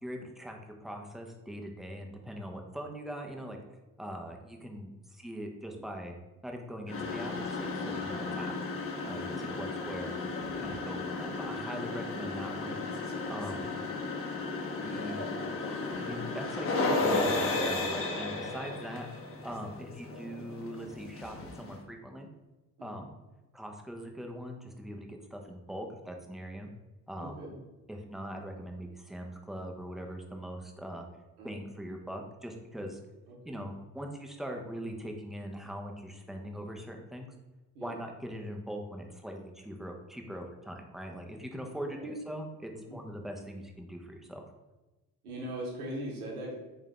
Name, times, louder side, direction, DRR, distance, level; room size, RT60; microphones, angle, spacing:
voice 1, 0.0-3.6 4.0-6.2 6.4-8.5 9.0-10.3 10.6-12.8 13.3-13.7 14.8-15.2 15.6-19.1 19.4-22.3 22.8-23.1 23.5-26.7 27.1-27.3 27.9-31.1 31.4-33.0 33.4-37.3 37.8-44.4, equal, ahead, 2 dB, 0.4 m, -41 dB
sound 1, 6.9-21.8, left 3 dB, 30° left, 0.7 m, -34 dB
voice 2, 9.3-9.6 13.3-13.6 22.8-23.1 27.2-27.6 31.4-31.7 33.3-33.6 37.7-38.0 41.9-42.1 42.7-43.0 45.2-46.5, right 1 dB, 80° right, -2 dB, 0.8 m, -41 dB
3.5 x 2.4 x 3.5 m, 1.1 s
figure-of-eight pair, 45°, 44 cm